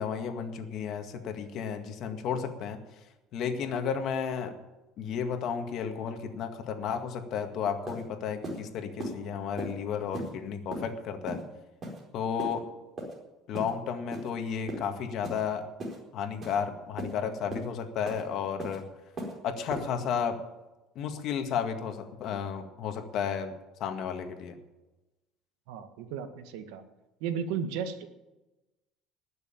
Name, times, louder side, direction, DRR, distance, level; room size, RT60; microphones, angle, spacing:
voice 1, 0.0-2.8 3.3-4.5 5.0-11.4 12.1-12.6 13.5-15.7 16.1-18.8 19.4-20.4 21.0-23.5 23.8-24.6, left 7 dB, 50° left, 6 dB, 2.0 m, -33 dB
sound 1, 7.4-7.5 7.9-8.0 8.4-8.6 9.0-9.1 9.6-9.7 10.1-10.3 10.7-10.9 11.3-11.4 11.8-12.0 12.4-12.5 13.0-13.1 13.5-13.7 14.1-14.3 14.7-14.9 15.2-15.4 15.8-16.0 16.4-16.6 17.0-17.1 17.5-17.7 18.1-18.2 18.6-18.8 19.2-19.3 19.7-19.8, right 1 dB, 30° right, 4.4 m, -37 dB
voice 2, 25.7-26.8 27.2-28.0, right 7 dB, 85° right, 8 dB, 1.7 m, -34 dB
19.5 x 6.8 x 8.9 m, 1.1 s
cardioid pair, 150°, 0 cm